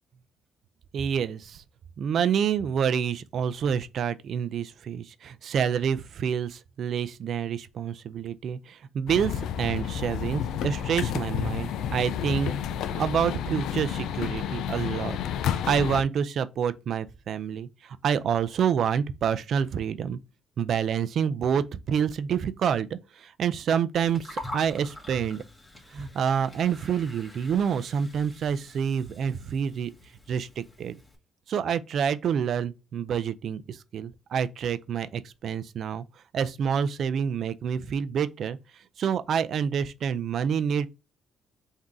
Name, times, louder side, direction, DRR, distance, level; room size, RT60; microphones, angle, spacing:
voice 1, 0.9-1.6 2.0-12.5 12.9-15.2 15.4-20.2 20.6-25.4 25.9-29.9 30.3-31.0 31.5-36.0 36.3-38.6 39.0-40.9, right 7 dB, 65° right, 0.4 m, -28 dB
sound 1, 9.1-16.0, left 9 dB, 85° left, 0.4 m, -30 dB
Gurgling, 23.9-31.1, left 1 dB, 15° left, 1.6 m, -44 dB
3.7 x 2.7 x 4.6 m
cardioid pair, 90°, 0 cm